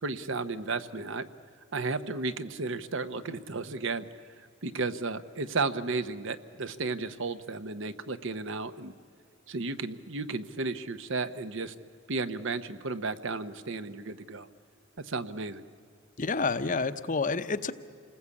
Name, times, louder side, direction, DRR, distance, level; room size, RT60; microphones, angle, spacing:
voice 1, 0.0-1.3 1.7-4.0 4.6-8.9 9.5-11.7 12.1-14.5 15.0-15.6, right 3 dB, 65° right, 11 dB, 0.9 m, -33 dB
voice 2, 16.2-17.7, left 4 dB, 40° left, 11 dB, 0.8 m, -29 dB
28.0 x 20.0 x 8.5 m, 2.4 s
head